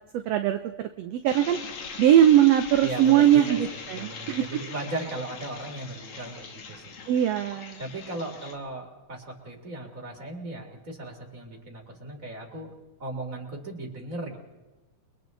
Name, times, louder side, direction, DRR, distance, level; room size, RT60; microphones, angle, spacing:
voice 1, 0.1-1.6 2.0-4.4 7.1-7.8, right 11 dB, 70° right, 7 dB, 1.9 m, -21 dB
sound 1, 1.3-8.5, left 5 dB, 55° left, 2.6 m, -41 dB
voice 2, 2.8-6.9 7.8-12.7 13.0-14.4, right 2 dB, 25° right, 1 dB, 3.9 m, -37 dB
29.5 x 23.5 x 4.1 m, 1.1 s
omnidirectional pair, 3.4 m